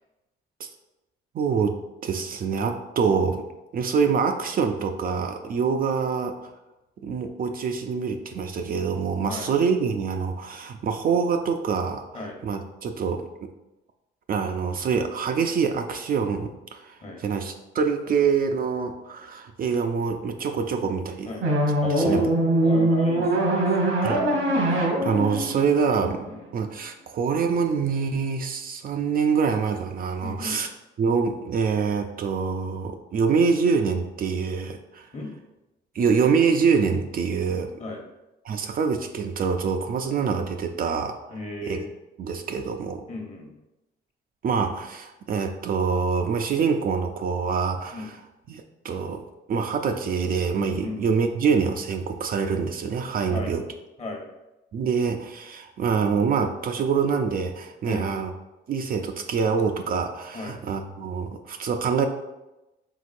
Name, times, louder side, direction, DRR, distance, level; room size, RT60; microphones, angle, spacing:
voice 1, 1.3-3.4 3.7-6.5 7.0-13.5 14.3-21.3 22.0-22.3 24.0-24.4 24.7-26.3 26.5-30.7 31.0-35.1 36.0-37.7 38.4-41.2 41.7-41.8 42.2-43.0 44.4-48.2 48.5-53.6 54.7-58.3 58.7-62.1, right 5 dB, 45° right, 5 dB, 0.4 m, -25 dB
sound 1, 21.4-26.5, right 1 dB, 80° right, 1.1 m, -23 dB
voice 2, 21.8-22.2 22.6-24.0 24.8-25.0 26.3-26.4 30.2-30.6 35.1-35.3 37.8-38.0 41.3-41.9 43.1-43.5 47.9-48.1 50.8-51.0 53.3-53.5 54.0-54.2 57.9-58.1 60.3-60.6, left 2 dB, 35° left, 1 dB, 1.0 m, -34 dB
4.7 x 3.5 x 2.5 m, 0.98 s
cardioid pair, 90°, 20 cm